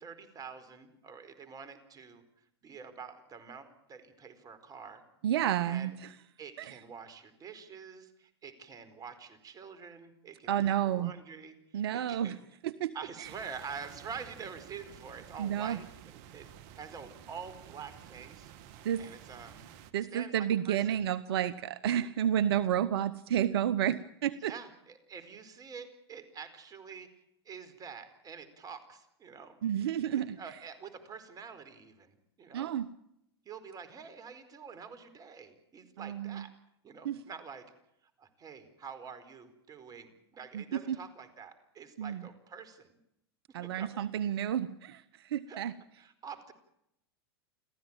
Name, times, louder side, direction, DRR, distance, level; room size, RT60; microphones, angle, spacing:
voice 1, 0.0-2.2 2.6-5.0 5.6-5.9 6.4-12.4 12.9-18.5 19.0-19.6 20.1-20.8 24.4-27.1 27.4-29.6 30.1-32.7 33.4-36.5 36.8-37.6 38.2-43.0 43.6-44.1 45.5-45.6 46.0-46.5, right 6 dB, 30° right, 11 dB, 4.6 m, -47 dB
voice 2, 5.2-6.1 6.6-6.8 10.5-11.1 11.7-12.3 12.6-12.9 13.2-13.3 15.4-15.8 18.8-19.0 19.9-24.5 29.6-30.4 32.5-32.9 36.0-36.4 37.0-37.2 40.5-41.0 42.0-42.3 43.5-45.7, right 10 dB, 70° right, 17 dB, 0.9 m, -31 dB
sound 1, 13.2-19.9, right 10 dB, 55° right, 2.0 m, -52 dB
30.0 x 14.0 x 9.0 m, 0.79 s
hypercardioid pair, 105°, 13 cm